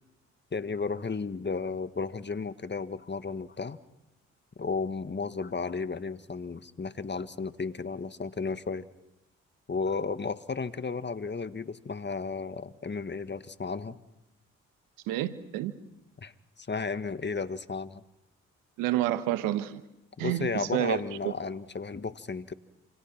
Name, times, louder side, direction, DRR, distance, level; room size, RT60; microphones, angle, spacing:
voice 1, 0.5-3.8 4.6-8.9 9.7-14.0 16.2-16.3 16.6-18.0 20.2-22.5, left 4 dB, 35° left, 1.7 m, -33 dB
voice 2, 15.1-15.7 18.8-19.8 20.2-21.3, right 13 dB, 85° right, 1.4 m, -29 dB
29.0 x 26.0 x 6.0 m
hypercardioid pair, 45°, 32 cm